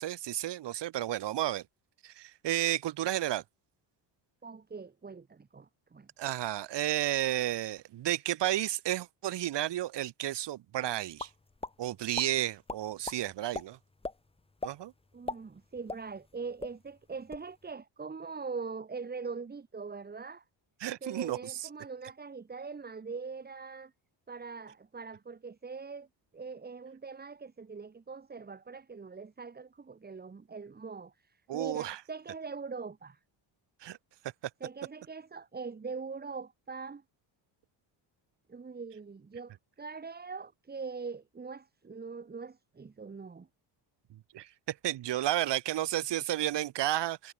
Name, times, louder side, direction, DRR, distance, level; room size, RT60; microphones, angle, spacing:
voice 1, 0.0-1.6 2.0-3.4 6.2-11.3 11.8-13.8 14.6-14.9 20.8-21.4 31.5-32.0 33.8-34.0 44.3-47.3, right 13 dB, 60° right, 2.5 m, -32 dB
voice 2, 4.4-6.1 15.1-20.4 21.0-23.9 24.3-26.1 26.3-33.2 34.6-37.0 38.5-43.5, right 5 dB, 20° right, 2.7 m, -42 dB
sound 1, 11.2-11.7 12.1-12.3 12.7-13.2 13.5-13.6 14.0-14.2 14.6-14.8 15.1-16.3 16.6-16.7 17.1-17.5, left 3 dB, 10° left, 2.9 m, -38 dB
cardioid pair, 165°, 47 cm